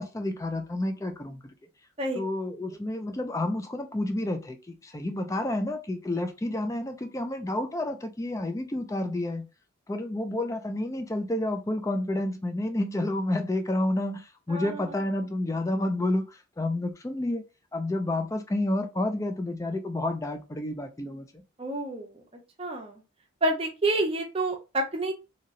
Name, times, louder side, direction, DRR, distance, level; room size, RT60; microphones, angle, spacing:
voice 1, 0.0-1.5 2.1-9.5 9.9-17.4 17.7-21.4, left 1 dB, 15° left, 0.3 m, -30 dB
voice 2, 14.5-14.8 21.6-22.2 22.6-23.0 23.4-25.1, right 2 dB, 25° right, 0.6 m, -28 dB
2.9 x 2.7 x 2.5 m
head